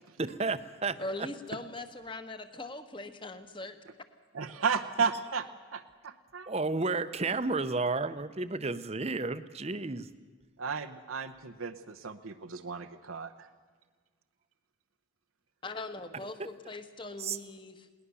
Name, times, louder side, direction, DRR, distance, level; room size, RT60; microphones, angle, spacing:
voice 1, 0.2-1.0 6.5-10.1 17.2-17.4, right 3 dB, 30° right, 12 dB, 0.8 m, -32 dB
voice 2, 1.0-3.8 15.6-17.9, left 2 dB, 25° left, 9 dB, 1.3 m, -41 dB
voice 3, 4.3-6.5 10.6-13.5, right 5 dB, 85° right, 6 dB, 0.9 m, -34 dB
21.5 x 18.5 x 7.0 m, 1.5 s
head